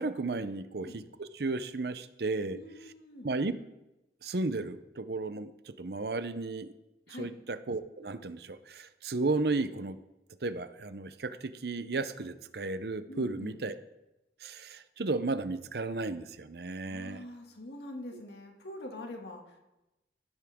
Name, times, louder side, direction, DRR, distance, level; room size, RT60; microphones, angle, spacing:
voice 1, 0.0-2.6 3.2-3.5 4.2-6.7 7.2-10.0 10.4-13.8 14.4-17.2, right 3 dB, 65° right, 12 dB, 0.7 m, -34 dB
voice 2, 2.5-3.3 7.1-7.3 13.1-13.6 16.8-19.6, left 1 dB, 75° left, 1 dB, 2.3 m, -44 dB
15.0 x 13.0 x 3.7 m, 0.97 s
head